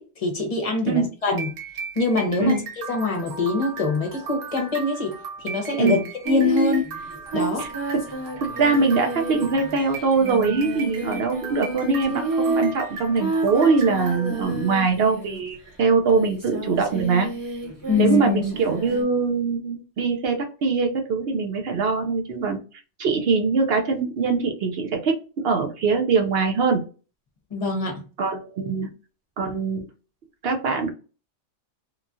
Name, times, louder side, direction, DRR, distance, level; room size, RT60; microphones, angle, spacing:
voice 1, 0.0-1.5 2.0-5.1 5.4-6.9 7.3-7.7 17.9-18.4 27.5-28.0, left 3 dB, 35° left, 2 dB, 0.7 m, -24 dB
sound 1, 1.2-14.4, right 5 dB, 85° right, 1.0 m, -37 dB
Singing, 6.2-15.6 16.1-19.0, right 2 dB, 20° right, 0.9 m, -30 dB
voice 2, 7.6-8.1 8.4-17.3 18.0-22.6 23.0-25.2 25.4-26.8 28.2-28.9 29.4-29.8 30.4-30.9, right 4 dB, 60° right, 4 dB, 0.7 m, -22 dB
2.9 x 2.3 x 2.6 m, 0.35 s
omnidirectional pair, 1.2 m